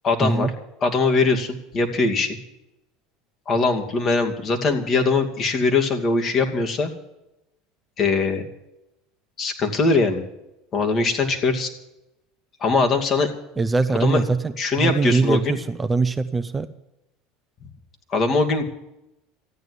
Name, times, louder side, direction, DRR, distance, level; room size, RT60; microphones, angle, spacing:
voice 1, 0.0-0.5 0.8-2.4 3.5-6.9 8.0-8.5 9.4-10.2 10.7-11.7 12.6-13.3 14.0-14.2 14.6-15.6 18.1-18.6, left 3 dB, 40° left, 4 dB, 2.5 m, -21 dB
voice 2, 13.6-16.7, right 3 dB, 20° right, 10 dB, 0.8 m, -22 dB
14.0 x 9.5 x 9.6 m, 0.90 s
hypercardioid pair, 85°, 0 cm